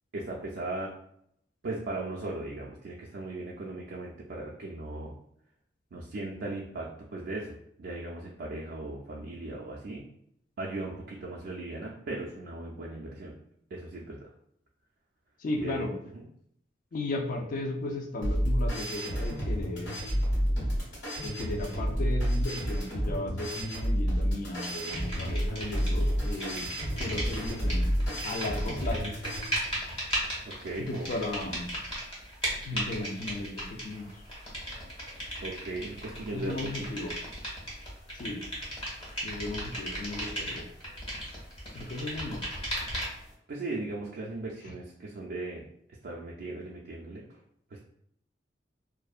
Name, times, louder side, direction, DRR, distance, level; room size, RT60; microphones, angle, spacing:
voice 1, 0.1-0.9 1.6-5.1 5.9-10.1 10.6-13.3 13.7-14.3 15.5-15.9 16.1-16.3 30.5-31.1 31.5-31.6 35.4-36.9 43.5-45.6 46.0-47.4 47.7-47.8, right 2 dB, 60° right, -4 dB, 0.4 m, -38 dB
voice 2, 15.4-15.9 16.9-20.0 21.2-27.8 28.2-29.1 30.9-31.7 32.6-34.1 36.3-37.1 38.1-38.4 39.2-40.6 41.7-42.4, left 2 dB, 50° left, 4 dB, 0.3 m, -35 dB
sound 1, 18.2-29.5, equal, 85° left, 1.4 m, -30 dB
sound 2, 24.6-26.0 26.3-43.3, equal, 30° left, 0.9 m, -37 dB
2.5 x 2.1 x 2.3 m, 0.72 s
head